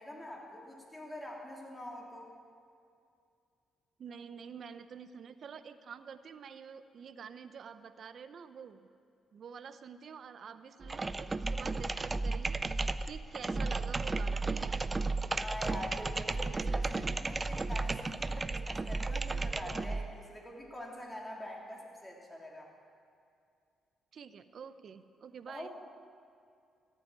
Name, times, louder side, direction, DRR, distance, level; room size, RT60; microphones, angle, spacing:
voice 1, 0.0-2.3 15.3-22.7 25.5-25.7, left 1 dB, 15° left, -2 dB, 3.6 m, -45 dB
voice 2, 4.0-8.9 9.3-14.8 24.1-25.7, right 6 dB, 60° right, 12 dB, 0.7 m, -48 dB
sound 1, 10.8-20.1, right 3 dB, 25° right, 0.5 m, -34 dB
14.0 x 7.7 x 9.7 m, 2.4 s
supercardioid pair, 65°, 0 cm